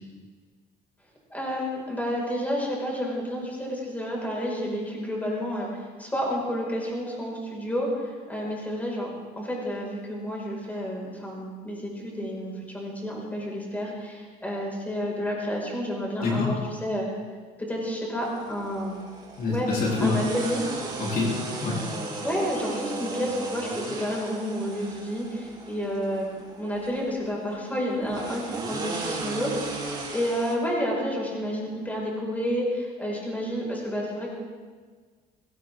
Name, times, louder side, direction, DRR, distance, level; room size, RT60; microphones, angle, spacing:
voice 1, 1.3-5.7 6.0-9.1 9.4-17.1 17.6-18.9 19.5-19.7 20.0-20.6 22.2-26.3 26.6-34.3, equal, 10° left, -3 dB, 5.6 m, -30 dB
voice 2, 16.2-16.5 19.4-20.2 21.0-21.9, left 3 dB, 60° left, -4 dB, 3.7 m, -26 dB
sound 1, 18.2-30.5, right 3 dB, 25° right, 3.4 m, -36 dB
21.0 x 16.5 x 3.8 m, 1.5 s
cardioid pair, 110°, 17 cm